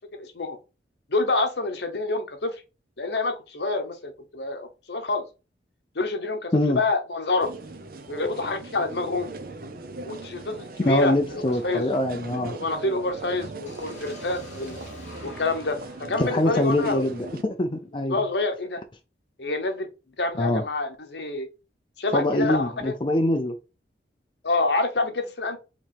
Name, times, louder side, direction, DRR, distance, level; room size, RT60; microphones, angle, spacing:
voice 1, 0.1-0.6 1.1-2.5 3.0-5.2 5.9-7.5 8.1-9.3 10.1-11.9 12.6-14.8 15.2-15.8 16.1-17.0 18.1-18.8 19.4-19.9 20.2-21.5 22.0-22.9 24.4-25.6, left 3 dB, 70° left, 1.0 m, -27 dB
sound 1, 7.4-17.4, right 3 dB, 55° right, 0.6 m, -39 dB
voice 2, 10.8-12.6 16.2-18.2 20.4-20.6 22.1-23.6, left 1 dB, 30° left, 0.5 m, -24 dB
sound 2, 13.7-17.6, left 1 dB, 45° left, 2.4 m, -46 dB
5.0 x 3.0 x 3.4 m
head